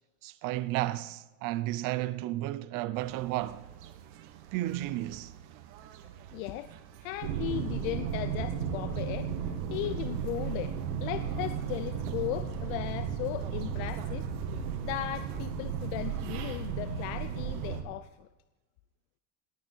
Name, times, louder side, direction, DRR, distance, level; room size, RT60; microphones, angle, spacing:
voice 1, 0.2-3.7 4.5-5.3, right 16 dB, 45° right, 0.7 m, -33 dB
sound 1, 2.9-17.8, right 10 dB, 65° right, 1.5 m, -50 dB
voice 2, 6.3-6.7 7.0-10.7 11.0-14.3 14.8-18.3, left 15 dB, 60° left, 0.7 m, -37 dB
sound 2, 7.2-17.8, right 7 dB, 80° right, 2.3 m, -34 dB
18.5 x 9.4 x 4.6 m
supercardioid pair, 145°, 45 cm